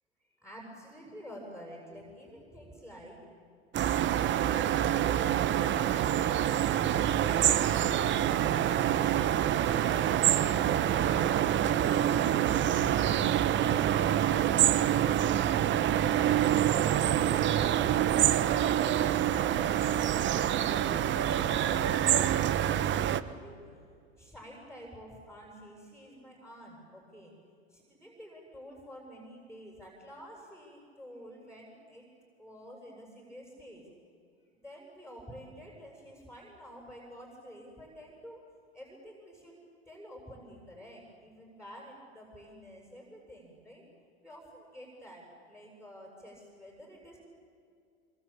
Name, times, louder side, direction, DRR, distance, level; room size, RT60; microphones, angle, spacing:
voice 1, 0.4-3.2 3.8-8.0 8.4-13.0 13.4-18.0 18.4-23.6 24.2-27.3 27.7-32.1 32.4-33.9 34.6-38.4 38.7-39.5 39.9-43.8 44.2-47.2, equal, 5° right, -1 dB, 7.5 m, -49 dB
sound 1, 3.7-23.2, right 11 dB, 35° right, 1.1 m, -26 dB
26.5 x 24.0 x 8.8 m, 2.4 s
hypercardioid pair, 100°, 33 cm